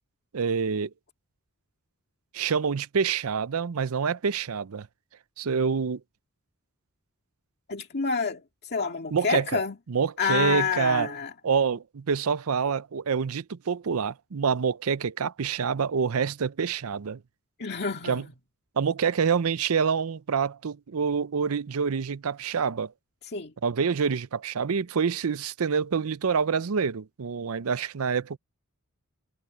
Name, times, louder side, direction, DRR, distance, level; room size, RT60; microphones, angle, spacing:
voice 1, 0.3-0.9 2.3-4.9 5.4-6.0 9.1-9.5 9.9-11.1 11.4-17.2 18.0-18.2 18.8-22.9 23.6-28.4, right 6 dB, 70° right, 0.6 m, -26 dB
voice 2, 7.7-9.8 10.2-11.3 17.6-18.2 23.3-23.5, left 5 dB, 50° left, 2.0 m, -28 dB
head